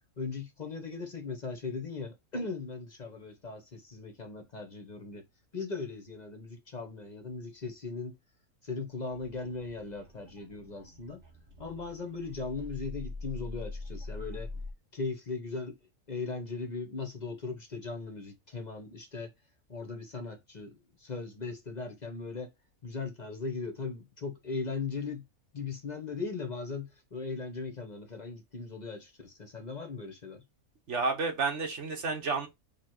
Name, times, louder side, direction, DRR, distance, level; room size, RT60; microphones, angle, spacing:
voice 1, 0.2-5.2 5.5-8.1 8.6-11.2 11.6-14.5 14.9-15.8 16.1-19.3 19.7-22.5 22.8-25.2 25.5-30.4, left 4 dB, 40° left, 0.7 m, -38 dB
sound 1, 9.1-14.7, left 3 dB, 40° right, 1.5 m, -43 dB
voice 2, 30.9-32.5, right 4 dB, 55° right, 1.4 m, -30 dB
4.5 x 2.6 x 4.4 m
omnidirectional pair, 1.5 m